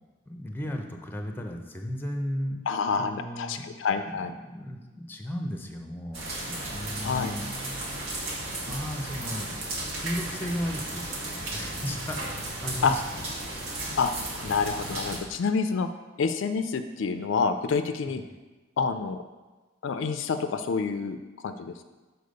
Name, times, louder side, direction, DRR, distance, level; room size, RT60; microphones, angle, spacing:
voice 1, 0.3-2.6 3.0-3.7 4.0-7.4 8.6-9.5 9.9-13.3, equal, 10° left, 3 dB, 0.6 m, -35 dB
voice 2, 2.7-4.3 7.0-7.4 12.8-12.9 14.0-14.1 14.4-15.9 16.2-18.2 18.8-19.2 19.8-21.8, left 5 dB, 65° left, 9 dB, 0.4 m, -28 dB
sound 1, 6.1-15.2, right 2 dB, 80° right, 1.5 m, -35 dB
6.7 x 4.3 x 5.2 m, 1.2 s
head